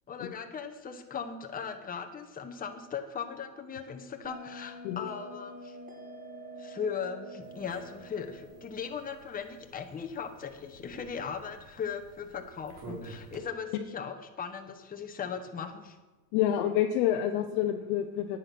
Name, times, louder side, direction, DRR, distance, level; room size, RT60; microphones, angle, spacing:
voice 1, 0.1-5.8 6.6-16.0, left 6 dB, 20° left, 4 dB, 1.1 m, -38 dB
Bell, 4.2-9.3, right 1 dB, 20° right, 2.7 m, -47 dB
sound 1, 7.4-13.4, right 2 dB, 50° right, 3.8 m, -51 dB
voice 2, 16.3-18.4, left 11 dB, 55° left, 4 dB, 1.0 m, -28 dB
9.8 x 9.1 x 6.1 m, 1.2 s
supercardioid pair, 110°, 47 cm